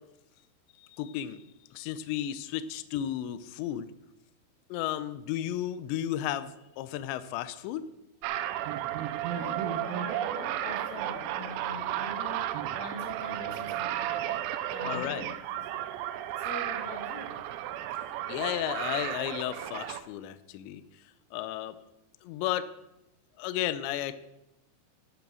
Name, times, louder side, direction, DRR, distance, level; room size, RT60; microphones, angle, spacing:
voice 1, 0.8-1.4 1.7-3.9 4.7-7.8 14.8-15.2 18.3-21.0 21.3-21.8 22.2-22.7 23.4-24.2, left 12 dB, 90° left, 13 dB, 2.5 m, -33 dB
sound 1, 8.2-20.0, right 12 dB, 85° right, 3.4 m, -33 dB
voice 2, 9.3-15.9 16.4-17.4, left 2 dB, 65° left, 2 dB, 4.5 m, -43 dB
12.0 x 8.8 x 6.3 m, 0.88 s
omnidirectional pair, 6.0 m